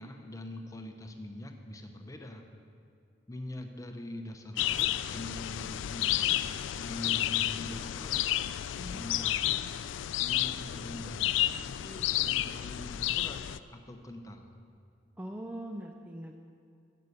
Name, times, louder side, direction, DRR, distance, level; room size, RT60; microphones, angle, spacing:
voice 1, 0.0-2.4 3.3-6.4 6.8-8.3 8.9-9.7 10.2-13.4 13.7-14.5, left 1 dB, 20° left, 4 dB, 0.8 m, -43 dB
sound 1, 4.6-13.6, left 13 dB, 85° left, 0.3 m, -31 dB
voice 2, 15.2-16.5, right 1 dB, 10° right, 3 dB, 0.4 m, -42 dB
9.7 x 6.7 x 8.0 m, 2.4 s
head